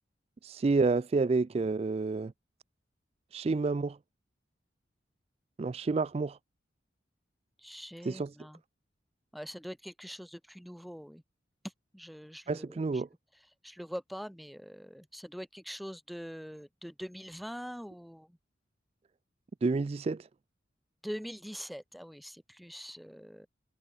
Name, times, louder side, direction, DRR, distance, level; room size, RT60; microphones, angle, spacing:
voice 1, 0.4-2.3 3.3-4.0 5.6-6.4 8.1-8.3 12.5-13.1 19.6-20.3, right 3 dB, 30° right, 0.3 m, -29 dB
voice 2, 7.6-8.6 9.3-11.2 11.6-13.0 13.3-18.4 21.0-23.5, equal, ahead, 4.9 m, -44 dB
head